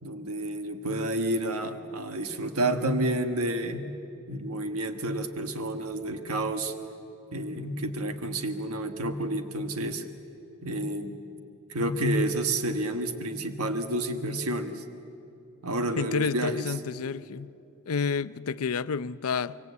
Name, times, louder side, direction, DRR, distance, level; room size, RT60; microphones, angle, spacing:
voice 1, 0.0-3.8 4.3-6.7 7.3-10.0 10.6-11.2 11.7-14.8 15.6-16.7, right 1 dB, 75° right, 1.4 m, -30 dB
voice 2, 16.0-17.5 17.9-19.6, left 5 dB, 70° left, 0.6 m, -30 dB
25.0 x 24.5 x 8.4 m
head